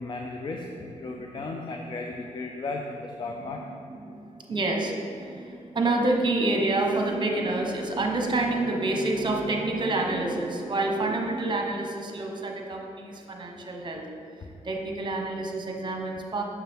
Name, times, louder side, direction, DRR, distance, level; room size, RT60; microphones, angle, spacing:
voice 1, 0.0-3.6, left 3 dB, 40° left, 2 dB, 0.6 m, -35 dB
voice 2, 3.4-14.0 14.6-16.4, right 2 dB, 40° right, 1 dB, 1.0 m, -28 dB
7.3 x 6.1 x 3.5 m, 2.6 s
cardioid pair, 85°, 12 cm